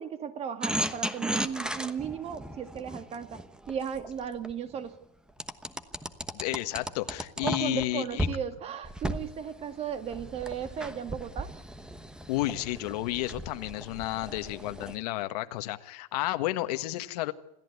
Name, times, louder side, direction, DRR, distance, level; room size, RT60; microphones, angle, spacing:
voice 1, 0.0-3.4 3.7-5.0 7.4-11.5, right 7 dB, 30° right, 10 dB, 1.8 m, -35 dB
sound 1, 0.6-4.5 5.4-7.9 8.2-8.4 8.8-15.0, right 1 dB, 5° right, 1.1 m, -35 dB
voice 2, 6.3-8.3 12.3-17.3, left 17 dB, 85° left, 10 dB, 1.6 m, -32 dB
27.5 x 14.5 x 9.6 m, 0.79 s
cardioid pair, 155°, 20 cm